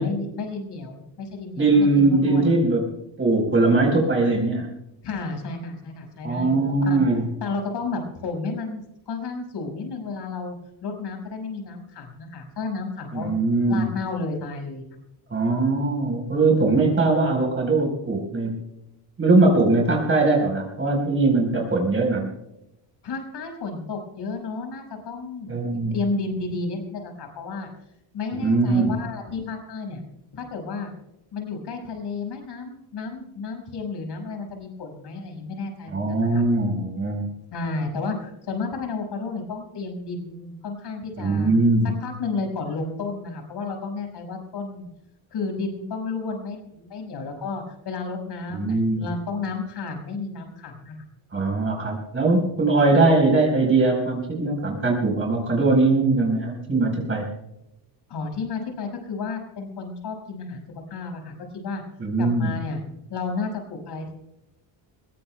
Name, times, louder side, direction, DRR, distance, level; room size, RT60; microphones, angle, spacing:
voice 1, 0.0-2.4 5.0-7.0 7.4-13.3 13.7-14.8 23.0-27.7 28.1-30.0 30.3-30.9 31.3-36.4 37.5-41.5 42.0-44.9 45.3-51.0 58.1-60.6 60.9-61.8 62.2-62.8 63.1-64.1, left 4 dB, 55° left, 3 dB, 5.6 m, -32 dB
voice 2, 1.6-2.9 3.2-4.7 6.2-7.2 13.1-13.9 15.3-18.6 19.2-22.3 25.5-25.9 28.4-28.9 35.9-37.3 41.2-41.9 48.6-49.0 51.3-57.2 62.0-62.5, right 3 dB, 25° right, 0 dB, 4.2 m, -21 dB
23.5 x 21.5 x 2.2 m, 0.84 s
cardioid pair, 155°, 47 cm